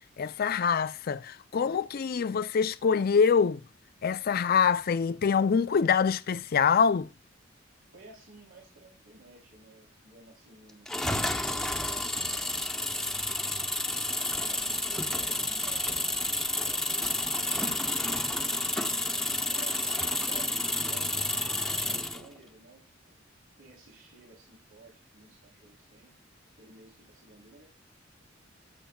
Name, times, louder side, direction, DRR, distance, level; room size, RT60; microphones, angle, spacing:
voice 1, 0.2-3.6 4.0-7.1, left 6 dB, 50° left, 0.4 m, -25 dB
voice 2, 7.9-13.4 13.8-18.7 19.5-20.6 20.8-23.0 23.6-26.1 26.6-27.6, right 2 dB, 85° right, 3.3 m, -53 dB
sound 1, 10.9-22.3, left 1 dB, ahead, 0.8 m, -30 dB
12.5 x 7.4 x 2.3 m
head